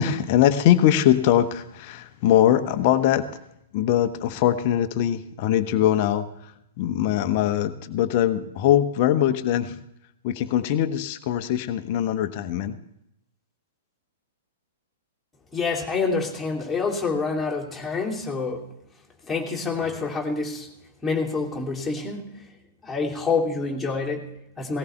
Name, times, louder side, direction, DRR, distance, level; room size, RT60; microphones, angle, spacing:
voice 1, 0.0-3.4 3.7-6.5 6.8-9.8 10.2-12.8, left 11 dB, 45° left, 10 dB, 1.0 m, -22 dB
voice 2, 15.5-18.7 19.2-20.7 21.0-22.4 22.8-24.8, left 4 dB, 10° left, -2 dB, 3.0 m, -27 dB
18.0 x 17.5 x 3.4 m, 0.80 s
figure-of-eight pair, 110°, 0 cm